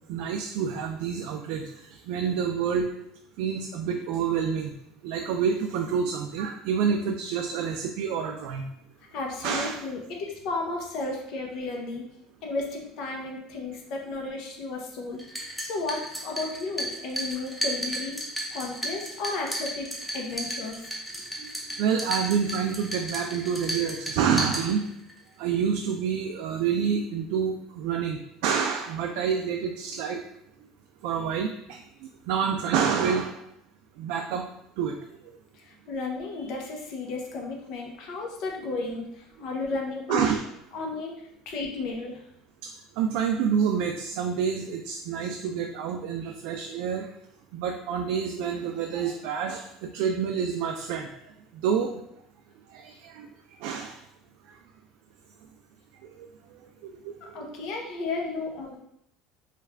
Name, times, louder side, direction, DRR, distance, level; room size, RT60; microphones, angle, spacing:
voice 1, 0.1-2.9 3.4-4.7 5.0-8.7 9.4-9.8 21.4-21.5 21.8-24.9 25.4-30.2 31.0-31.8 32.3-33.4 34.0-34.5 34.8-34.9 40.1-40.4 42.6-42.7 43.0-47.1 47.5-51.1 51.5-51.9 52.7-53.3 53.6-54.0 56.0-56.3 56.8-57.4, right 7 dB, 75° right, 3 dB, 0.3 m, -28 dB
voice 2, 9.1-12.0 12.4-18.2 18.5-21.0 35.5-40.3 40.7-42.3 57.2-58.8, left 3 dB, 60° left, 1 dB, 0.7 m, -33 dB
sound 1, 15.2-25.2, right 1 dB, ahead, 0.6 m, -34 dB
3.2 x 2.3 x 3.4 m, 0.77 s
supercardioid pair, 125°, 0 cm